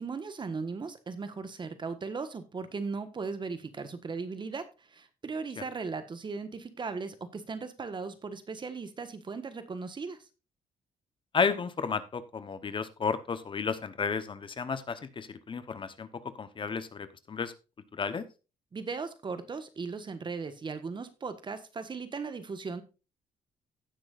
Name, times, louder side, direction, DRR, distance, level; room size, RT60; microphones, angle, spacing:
voice 1, 0.0-10.2 18.7-22.8, right 4 dB, 35° right, 11 dB, 1.4 m, -37 dB
voice 2, 11.3-16.1 16.4-17.5 17.9-18.2, left 5 dB, 40° left, 12 dB, 1.0 m, -32 dB
17.0 x 6.1 x 2.5 m, 0.30 s
cardioid pair, 100°, 14 cm